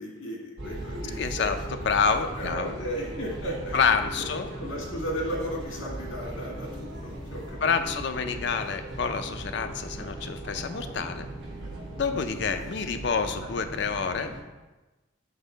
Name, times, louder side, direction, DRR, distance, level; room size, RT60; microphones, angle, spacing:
voice 1, 0.0-1.5 2.4-3.7 4.1-4.3 4.6-7.6 8.3-8.4 9.9-10.1, equal, 85° left, -2 dB, 1.7 m, -35 dB
sound 1, 0.6-14.4, right 1 dB, 70° right, 1.1 m, -38 dB
voice 2, 1.2-2.7 3.7-4.5 7.6-11.3 12.0-14.3, left 5 dB, 60° left, 7 dB, 0.4 m, -28 dB
6.4 x 3.9 x 4.0 m, 1.1 s
head